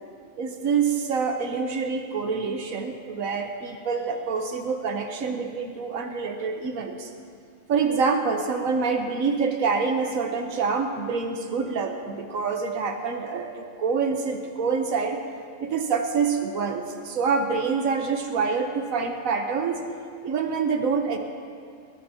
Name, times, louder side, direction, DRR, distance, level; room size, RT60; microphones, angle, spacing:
voice 1, 0.4-7.1 7.7-15.2 15.6-19.8 20.2-21.2, right 5 dB, 90° right, 4 dB, 1.4 m, -26 dB
21.0 x 19.5 x 2.9 m, 2.3 s
omnidirectional pair, 1.4 m